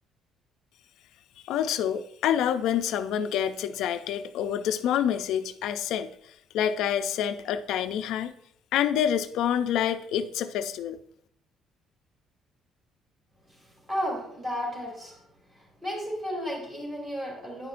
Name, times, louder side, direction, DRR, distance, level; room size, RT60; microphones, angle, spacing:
voice 1, 1.4-6.1 6.5-8.3 8.7-11.0, left 9 dB, 75° left, 10 dB, 0.4 m, -27 dB
voice 2, 13.5-15.2 15.5-17.7, equal, 20° right, -2 dB, 3.2 m, -33 dB
10.0 x 5.6 x 2.5 m, 0.71 s
cardioid pair, 130°, 0 cm